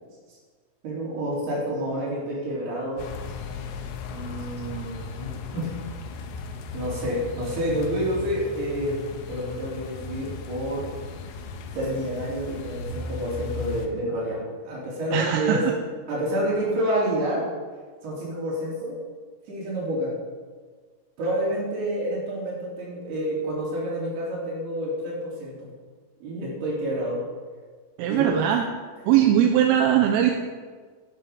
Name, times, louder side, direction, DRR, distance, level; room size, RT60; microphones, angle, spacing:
voice 1, 0.8-3.1 4.1-5.7 6.7-9.0 9.3-10.8 11.7-15.6 16.1-17.4 18.0-19.0 19.5-20.1 21.2-25.5 26.2-27.2 28.1-28.3, right 1 dB, 50° right, -6 dB, 5.8 m, -28 dB
sound 1, 3.0-13.9, left 5 dB, 75° left, 2.8 m, -36 dB
voice 2, 15.1-15.7 28.0-28.7 29.1-30.3, right 10 dB, 80° right, 3 dB, 3.2 m, -20 dB
12.0 x 11.0 x 5.2 m, 1.5 s
omnidirectional pair, 5.9 m